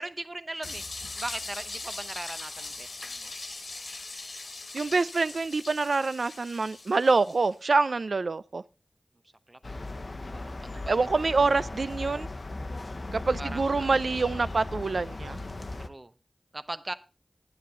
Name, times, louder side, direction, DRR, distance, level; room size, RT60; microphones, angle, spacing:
voice 1, 0.0-3.3 9.5-9.9 10.3-11.3 13.4-13.9 15.8-16.1 16.5-16.9, right 2 dB, 35° right, 0.8 m, -39 dB
sound 1, 0.6-7.5, left 3 dB, 80° left, 1.6 m, -40 dB
voice 2, 4.7-8.6 10.9-12.3 13.1-15.4, right 3 dB, 80° right, 0.5 m, -26 dB
sound 2, 9.6-15.9, left 2 dB, 55° left, 0.8 m, -37 dB
10.0 x 9.6 x 4.2 m
wide cardioid pair, 45°, 0 cm